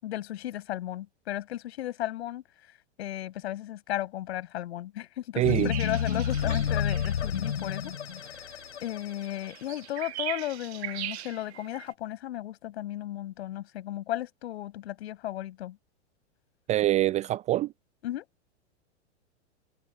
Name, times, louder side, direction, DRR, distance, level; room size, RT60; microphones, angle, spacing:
voice 1, 0.0-2.7 3.0-7.9 8.2-15.8 18.0-18.2, left 13 dB, 65° left, 7.4 m, -35 dB
sound 1, 5.4-9.8, left 8 dB, 85° left, 4.4 m, -30 dB
voice 2, 5.4-5.7 16.7-17.7, right 14 dB, 20° right, 0.4 m, -25 dB
sound 2, 5.7-11.9, right 14 dB, 65° right, 1.8 m, -40 dB
hypercardioid pair, 110°, 34 cm